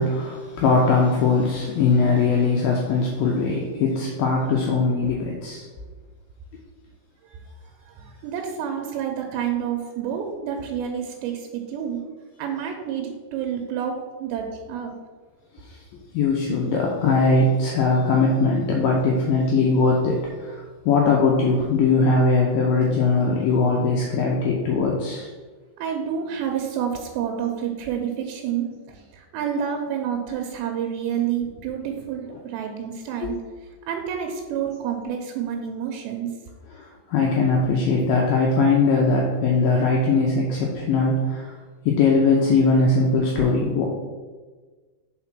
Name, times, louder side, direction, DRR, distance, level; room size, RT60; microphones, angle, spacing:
voice 1, 0.0-5.6 15.6-25.3 33.2-33.4 36.7-41.5 41.9-43.8, left 3 dB, 80° left, -1 dB, 2.1 m, -20 dB
voice 2, 7.9-12.0 12.4-14.9 25.8-33.4 33.9-36.3, right 8 dB, 85° right, 3 dB, 2.9 m, -29 dB
5.9 x 4.5 x 5.9 m, 1.4 s
omnidirectional pair, 5.0 m